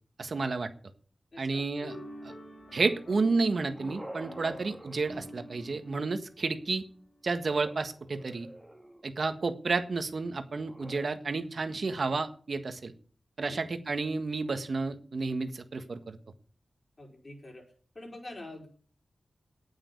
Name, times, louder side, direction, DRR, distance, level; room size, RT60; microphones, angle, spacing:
voice 1, 0.2-0.7 1.4-2.0 2.2-2.3 2.7-6.8 7.2-8.5 9.0-12.9 13.4-16.2, right 3 dB, 65° right, 8 dB, 1.6 m, -31 dB
voice 2, 1.3-1.7 4.4-4.6 13.4-13.6 17.0-17.7 17.9-18.7, left 1 dB, 45° left, 0 dB, 5.0 m, -45 dB
sound 1, 1.8-7.3, equal, 60° left, 3.8 m, -49 dB
sound 2, 3.5-5.9 7.4-9.2 10.6-11.0, right 1 dB, 10° right, 2.9 m, -47 dB
9.1 x 8.9 x 8.4 m, 0.43 s
cardioid pair, 50°, 0 cm